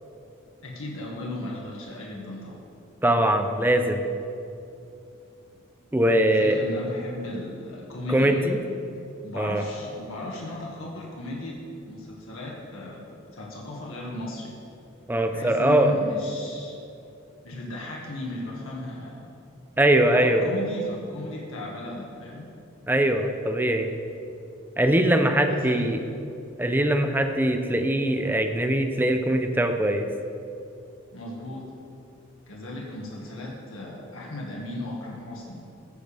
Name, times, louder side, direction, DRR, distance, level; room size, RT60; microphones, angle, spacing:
voice 1, 0.6-2.7 6.1-8.6 9.2-11.6 11.9-14.5 15.3-16.8 17.4-19.2 20.1-22.5 25.5-25.9 31.1-31.7 32.5-35.6, left 1 dB, 80° left, -3 dB, 1.8 m, -36 dB
voice 2, 3.0-4.0 5.9-6.6 8.1-8.6 9.4-9.6 15.1-15.9 19.8-20.5 22.9-23.9 24.8-26.0 26.6-30.1, right 1 dB, 10° right, 5 dB, 0.6 m, -22 dB
14.0 x 10.5 x 3.4 m, 2.6 s
head